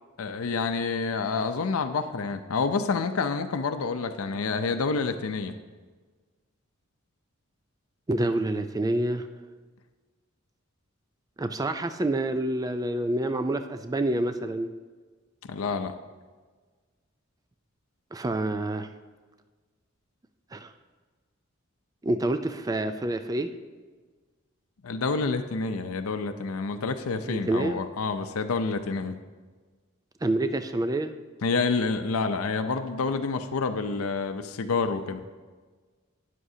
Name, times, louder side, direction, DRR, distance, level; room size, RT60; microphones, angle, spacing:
voice 1, 0.2-5.5 15.5-15.9 24.8-29.2 31.4-35.2, left 4 dB, 85° left, 9 dB, 0.6 m, -28 dB
voice 2, 8.1-9.3 11.4-14.7 18.1-18.9 20.5-20.7 22.0-23.5 27.2-27.8 30.2-31.1, right 1 dB, 15° right, 9 dB, 0.4 m, -27 dB
12.5 x 9.9 x 2.7 m, 1.4 s
head